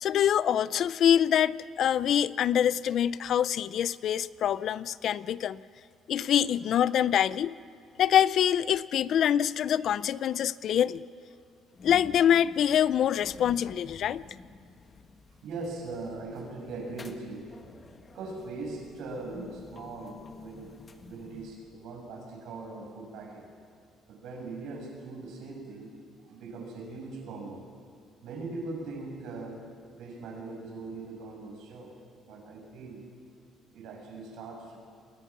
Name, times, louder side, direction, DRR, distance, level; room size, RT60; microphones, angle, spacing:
voice 1, 0.0-5.6 6.1-7.5 8.0-11.0 11.8-14.2, left 9 dB, 50° left, 18 dB, 0.5 m, -25 dB
sound 1, 11.7-21.9, left 3 dB, 25° left, 1.3 m, -50 dB
voice 2, 15.4-17.5 18.1-20.8 21.0-23.5 24.1-25.9 26.2-27.6 28.2-29.6 30.0-31.9 32.3-33.0 33.7-34.8, right 3 dB, 70° right, 1 dB, 6.8 m, -40 dB
29.5 x 21.0 x 6.0 m, 2.4 s
cardioid pair, 160°, 0 cm